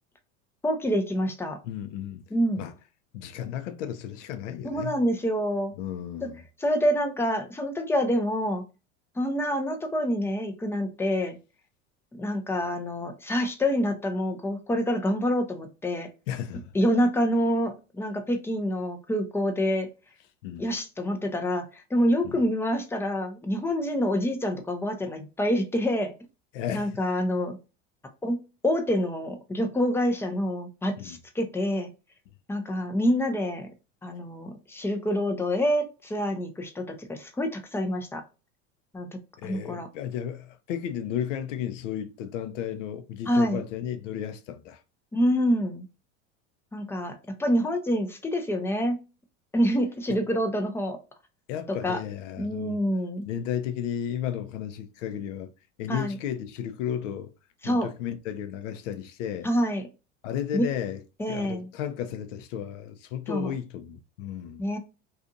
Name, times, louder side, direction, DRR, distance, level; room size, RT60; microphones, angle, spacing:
voice 1, 0.6-1.6 2.3-2.6 4.6-5.7 6.2-6.3 6.6-8.6 9.2-11.4 12.1-16.1 16.7-19.9 20.6-26.1 26.7-27.6 28.2-28.4 28.6-31.9 32.5-33.7 34.0-38.2 38.9-39.1 39.4-39.9 43.3-43.6 45.1-45.9 46.7-49.0 49.5-51.0 51.7-52.0 52.4-53.3 55.9-56.2 57.6-57.9 59.4-59.9 60.5-60.7 61.2-61.7 63.3-63.5 64.6-64.8, equal, 5° left, 0.4 m, -27 dB
voice 2, 1.6-2.2 2.6-2.7 3.1-5.0 5.8-6.4 16.3-16.6 20.4-20.6 22.2-22.4 26.5-26.9 31.0-31.2 39.4-44.8 50.1-50.2 51.5-52.8 53.3-55.5 55.8-57.3 57.6-59.5 60.2-61.0 61.3-64.7, left 9 dB, 75° left, 0.6 m, -33 dB
2.6 x 2.4 x 2.6 m
hypercardioid pair, 90°, 37 cm